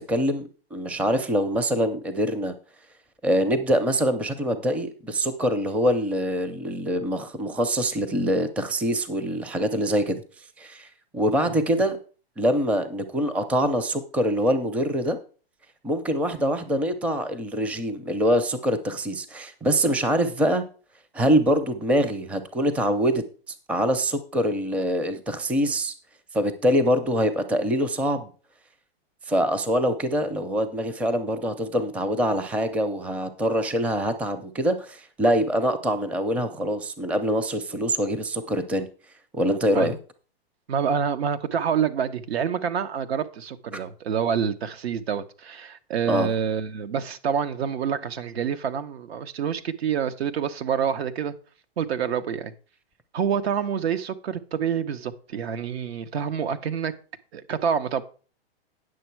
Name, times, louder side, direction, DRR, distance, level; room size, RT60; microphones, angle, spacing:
voice 1, 0.1-2.5 3.2-10.2 10.6-10.9 11.1-12.0 12.4-15.2 15.8-20.6 21.1-23.2 23.7-25.9 26.3-28.3 29.3-38.9 39.3-40.0 46.1-46.3, equal, 5° right, 0.5 m, -24 dB
voice 2, 40.7-51.3 51.8-52.5 53.1-56.9 57.3-58.0, right 7 dB, 75° right, 1.1 m, -27 dB
9.5 x 6.5 x 4.6 m
hypercardioid pair, 135°, 31 cm